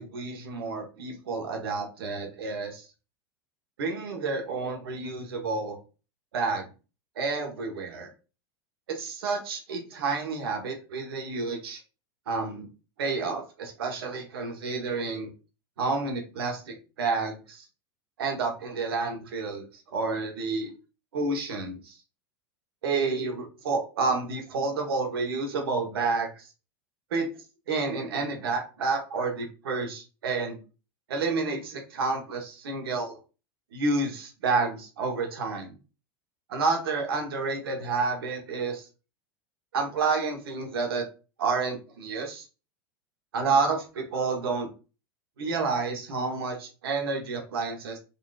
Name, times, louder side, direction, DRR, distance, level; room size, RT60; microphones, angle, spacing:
voice 1, 0.0-2.9 3.8-5.8 6.3-6.6 7.2-8.1 8.9-11.8 12.3-12.7 13.0-15.3 15.8-17.7 18.2-19.6 19.9-20.7 21.1-21.9 22.8-26.5 27.1-27.3 27.7-30.6 31.1-33.2 33.7-35.7 36.5-38.8 39.7-41.1 41.4-42.5 43.3-44.7 45.4-48.0, right 4 dB, 80° right, 2 dB, 1.2 m, -29 dB
4.0 x 3.0 x 2.4 m, 0.33 s
hypercardioid pair, 90°, 12 cm